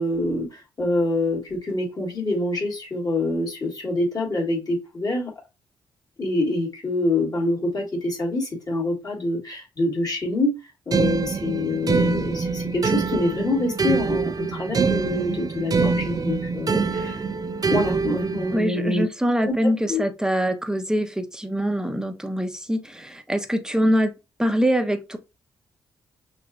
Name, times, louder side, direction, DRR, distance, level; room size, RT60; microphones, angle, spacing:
voice 1, 0.0-5.3 6.2-10.5 10.9-17.2 17.7-19.0 19.4-19.5 19.9-20.0, left 2 dB, 40° left, 2.6 m, -26 dB
sound 1, 10.9-18.6, right 5 dB, 40° right, 0.5 m, -24 dB
voice 2, 18.5-24.1 24.4-25.2, equal, 5° right, 0.9 m, -24 dB
5.9 x 2.5 x 2.5 m
hypercardioid pair, 40°, 10 cm